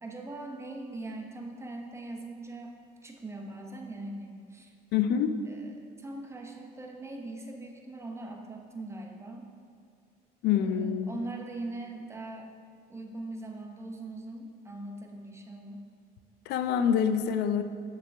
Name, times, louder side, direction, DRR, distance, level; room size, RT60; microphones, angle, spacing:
voice 1, 0.0-2.8 3.0-4.7 5.4-9.5 10.6-12.5 12.9-15.9, right 2 dB, 15° right, 1 dB, 0.8 m, -41 dB
voice 2, 4.9-5.4 10.4-11.1 16.5-17.6, left 8 dB, 80° left, 9 dB, 0.4 m, -26 dB
6.8 x 6.7 x 3.4 m, 2.3 s
cardioid pair, 110°, 17 cm